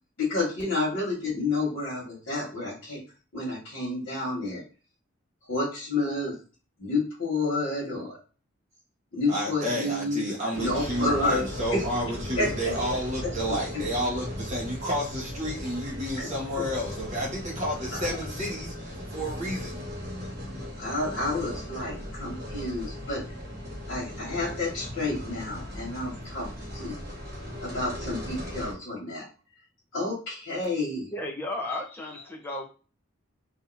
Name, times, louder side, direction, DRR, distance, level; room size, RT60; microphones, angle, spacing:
voice 1, 0.2-3.0 3.3-4.6 5.5-6.3 6.8-8.2 9.1-10.3 10.5-11.8 12.4-12.7 13.5-13.6 16.2-16.3 16.5-16.6 18.1-18.2 20.5-23.2 23.9-26.5 26.7-27.0 27.6-29.2 29.9-31.1, left 2 dB, 75° left, -8 dB, 1.7 m, -30 dB
voice 2, 9.3-19.8, equal, 35° right, -5 dB, 1.5 m, -31 dB
sound 1, 10.5-28.7, left 1 dB, 50° right, 1.2 m, -37 dB
voice 3, 31.1-32.7, left 1 dB, 10° left, -1 dB, 0.7 m, -34 dB
3.8 x 2.9 x 2.6 m, 0.35 s
head